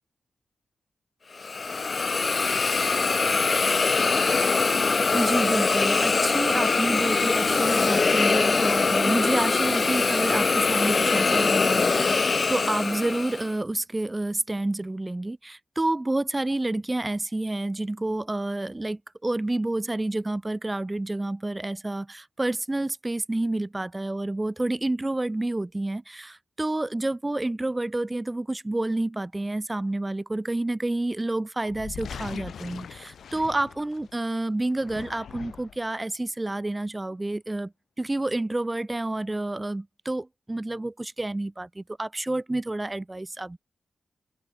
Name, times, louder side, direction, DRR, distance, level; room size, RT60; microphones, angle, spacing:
Hiss, 1.4-13.5, left 4 dB, 50° left, 0.7 m, -23 dB
voice 1, 5.1-37.7 38.0-43.6, right 2 dB, 20° right, 0.9 m, -29 dB
sound 1, 31.7-34.2 34.7-35.9, left 8 dB, 80° left, 1.2 m, -41 dB
open air
cardioid pair, 55°, 0 cm